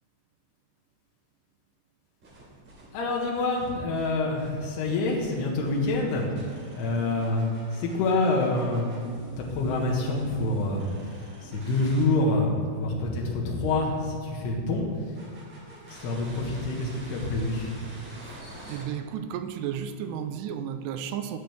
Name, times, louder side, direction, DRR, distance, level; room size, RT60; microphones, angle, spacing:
sound 1, 2.2-12.0 15.1-18.8, right 1 dB, 40° right, 3.5 m, -47 dB
voice 1, 2.9-6.4 6.7-7.5 7.7-10.9 11.4-14.8 15.9-17.8, left 2 dB, 75° left, -1 dB, 3.6 m, -27 dB
voice 2, 18.7-21.4, right 9 dB, 85° right, 8 dB, 2.6 m, -33 dB
20.0 x 7.6 x 3.5 m, 2.1 s
omnidirectional pair, 4.9 m